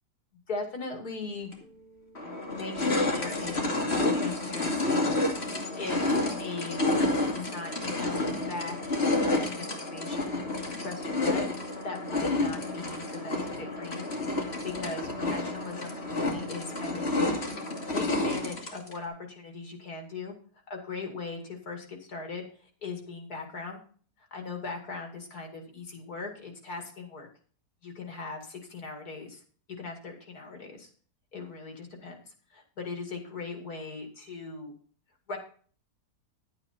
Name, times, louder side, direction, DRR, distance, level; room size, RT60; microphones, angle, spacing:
voice 1, 0.5-1.5 2.5-3.8 4.1-5.1 5.8-6.0 6.4-10.4 10.8-11.4 11.8-14.1 14.6-17.4 17.9-20.4 20.7-22.5 22.8-23.8 24.3-27.3 27.8-29.4 29.8-30.9 31.3-34.7 35.3-35.4, left 3 dB, 70° left, 3 dB, 2.9 m, -39 dB
sound 1, 1.5-1.6 2.2-19.0, left 2 dB, 40° left, 2.5 m, -30 dB
11.0 x 8.9 x 4.3 m, 0.44 s
omnidirectional pair, 1.7 m